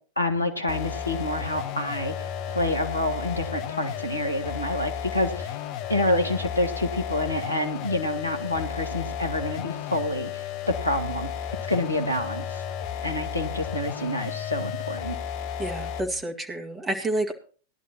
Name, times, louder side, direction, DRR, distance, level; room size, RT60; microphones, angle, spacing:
voice 1, 0.2-5.6 5.9-10.5 10.8-11.3 11.7-12.6 13.0-15.2, left 1 dB, 85° left, 5 dB, 1.5 m, -28 dB
sound 1, 0.7-16.2, left 8 dB, 40° left, 0.9 m, -33 dB
voice 2, 15.6-17.3, right 1 dB, 10° right, 3 dB, 1.9 m, -29 dB
18.0 x 11.0 x 2.9 m, 0.41 s
figure-of-eight pair, 90°, 0 cm